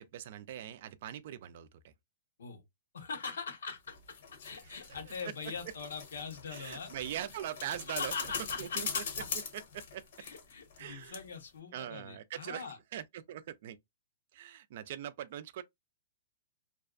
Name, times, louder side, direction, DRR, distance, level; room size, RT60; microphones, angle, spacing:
voice 1, 0.0-1.9 4.5-4.7 6.5-8.3 8.6-9.0 9.5-10.0 10.8-11.2 11.7-12.7 12.9-13.8 14.3-15.6, right 11 dB, 55° right, 0.3 m, -42 dB
voice 2, 2.9-4.2 4.4-6.9 7.9-9.1 10.2-12.8, left 5 dB, 90° left, 1.0 m, -42 dB
sound 1, 3.9-10.9 11.1-11.2, left 6 dB, 65° left, 0.9 m, -42 dB
2.6 x 2.3 x 2.4 m
hypercardioid pair, 150°, 0 cm